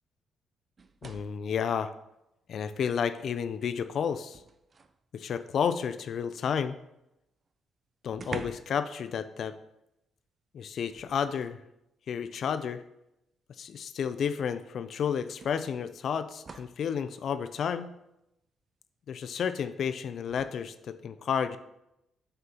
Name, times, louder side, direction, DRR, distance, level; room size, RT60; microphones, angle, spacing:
sound 1, 0.8-1.5 2.9-3.0 3.4-5.0 7.1-7.2 7.5-7.6 8.1-8.9 9.1-9.4 10.9-11.6 12.8-12.9 14.4-14.5 15.4-16.9 20.2-20.5, right 4 dB, 35° right, 0.4 m, -46 dB
voice 1, 1.0-1.9 2.5-4.4 5.1-6.8 8.0-9.5 10.5-11.6 12.1-12.8 13.6-17.9 19.1-21.6, left 7 dB, 60° left, 11 dB, 0.3 m, -31 dB
7.5 x 5.6 x 2.8 m, 0.87 s
cardioid pair, 90°, 0 cm